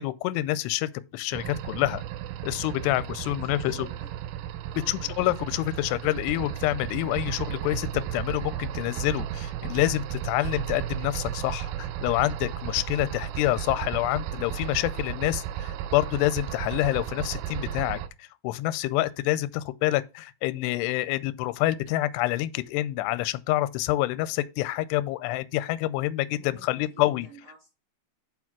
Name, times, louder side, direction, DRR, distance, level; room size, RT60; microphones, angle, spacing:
voice 1, 0.0-2.0 2.4-3.9 4.9-27.3, left 16 dB, 85° left, 2.6 m, -27 dB
sound 1, 1.3-18.1, right 10 dB, 85° right, 2.2 m, -34 dB
voice 2, 3.2-4.1 4.7-5.1 26.4-27.7, right 4 dB, 65° right, 1.5 m, -50 dB
5.6 x 4.8 x 5.9 m
omnidirectional pair, 5.0 m